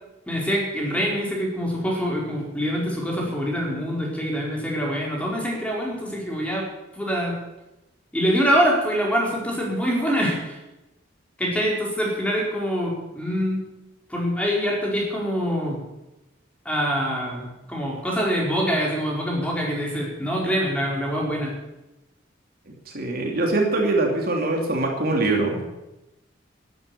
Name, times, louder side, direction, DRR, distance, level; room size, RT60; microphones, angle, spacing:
voice 1, 0.3-6.7 6.9-7.4 8.1-10.6 11.4-13.6 14.1-15.8 16.6-21.5, equal, 5° left, -3 dB, 4.7 m, -25 dB
voice 2, 22.9-25.6, right 2 dB, 50° right, 1 dB, 2.8 m, -23 dB
12.0 x 10.5 x 9.9 m, 0.96 s
head